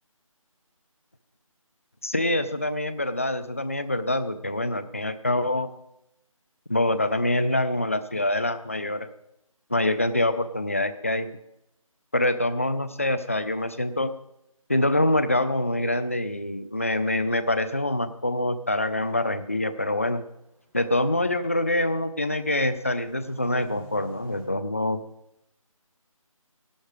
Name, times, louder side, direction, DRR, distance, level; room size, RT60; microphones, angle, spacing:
voice 1, 2.0-5.7 6.7-9.1 9.7-11.3 12.1-14.1 14.7-20.2 20.7-25.0, left 1 dB, 25° left, 12 dB, 0.4 m, -25 dB
sound 1, 20.6-20.8 21.2-24.5, right 1 dB, 40° right, 5.1 m, -49 dB
13.0 x 11.5 x 4.8 m, 0.82 s
figure-of-eight pair, 170°, 18 cm